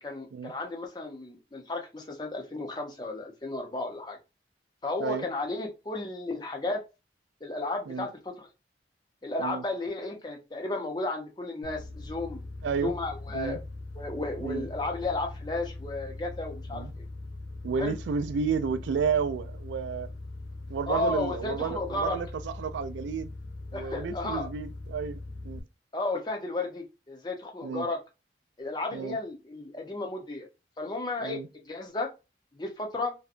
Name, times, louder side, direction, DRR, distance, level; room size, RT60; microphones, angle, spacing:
voice 1, 0.0-4.2 4.8-6.8 7.4-8.5 9.2-12.4 12.8-13.6 14.0-17.0 17.8-17.9 20.9-22.2 23.7-24.5 25.9-28.0 28.6-30.5 30.8-32.1 32.5-33.1, left 2 dB, 25° left, 0.6 m, -33 dB
sound 1, 11.6-25.6, left 2 dB, 80° left, 0.6 m, -41 dB
voice 2, 12.6-12.9 13.3-13.6 14.4-14.7 16.7-16.9 17.6-20.1 20.7-23.3 23.7-25.6 27.6-27.9 28.9-29.2 31.2-31.5, right 6 dB, 90° right, 0.3 m, -31 dB
2.7 x 2.2 x 2.4 m
head